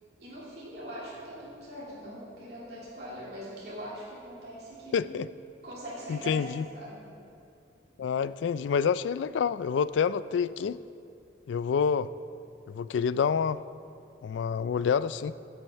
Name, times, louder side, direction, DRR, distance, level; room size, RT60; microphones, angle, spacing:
voice 1, 0.2-5.2 5.6-7.1, equal, 60° right, -7 dB, 2.9 m, -42 dB
voice 2, 4.9-5.3 6.1-6.6 8.0-10.8 11.5-12.1 12.7-13.6 14.2-15.3, left 6 dB, 85° left, 16 dB, 0.3 m, -27 dB
11.5 x 7.7 x 5.6 m, 2.5 s
head